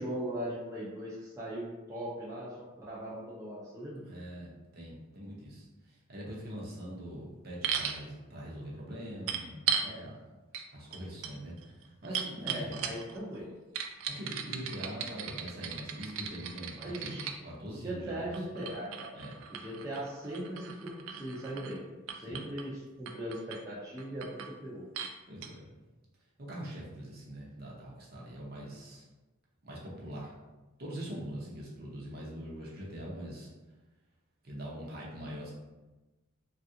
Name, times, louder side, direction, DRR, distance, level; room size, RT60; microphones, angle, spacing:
voice 1, 0.0-4.0 12.4-13.5 16.7-17.3 17.7-19.2 19.5-21.8 22.1-24.9, right 1 dB, 15° right, -7 dB, 0.5 m, -39 dB
voice 2, 4.0-10.2 10.7-12.9 14.2-17.1 17.4-18.6 19.1-19.4 22.2-22.5 25.3-25.7 26.4-29.1 29.6-30.3 30.8-33.5 34.4-35.5, equal, 50° right, -5 dB, 0.8 m, -43 dB
sound 1, 7.6-8.0 9.3-9.9 10.5-10.7 10.9-13.2 13.7-17.4 18.3-21.8 22.1-22.7 23.1-23.6 24.0-24.5 24.9-25.1 25.4-25.5, right 8 dB, 75° right, 0.3 m, -37 dB
3.2 x 2.4 x 2.7 m, 1.1 s
head